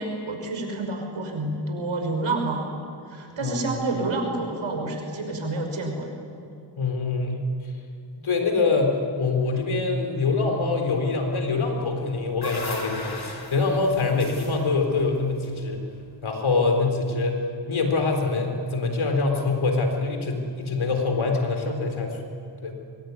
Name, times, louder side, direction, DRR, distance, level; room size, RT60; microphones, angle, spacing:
voice 1, 0.0-2.7 3.1-6.1, right 2 dB, 85° right, 3 dB, 5.7 m, -29 dB
voice 2, 3.4-3.8 6.8-7.5 8.2-15.8 16.2-22.2 22.6-22.8, left 3 dB, 90° left, 4 dB, 4.0 m, -24 dB
sound 1, 11.9-16.2, left 3 dB, 50° left, 5.2 m, -38 dB
25.0 x 22.0 x 9.6 m, 2.5 s
cardioid pair, 45°, 47 cm